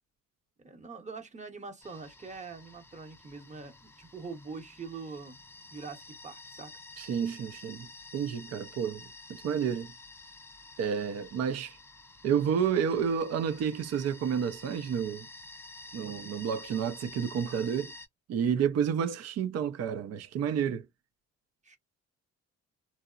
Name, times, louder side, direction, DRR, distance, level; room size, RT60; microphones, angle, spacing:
voice 1, 0.6-5.4 5.7-6.7 16.0-16.3 21.6-21.8, right 4 dB, 25° right, 0.8 m, -44 dB
sound 1, 1.8-18.1, left 2 dB, 10° left, 0.4 m, -50 dB
voice 2, 7.0-7.9 8.1-9.1 9.4-9.9 10.8-11.8 12.2-15.3 15.9-17.9 18.3-20.9, right 7 dB, 55° right, 0.5 m, -30 dB
2.9 x 2.0 x 2.3 m
cardioid pair, 90°, 30 cm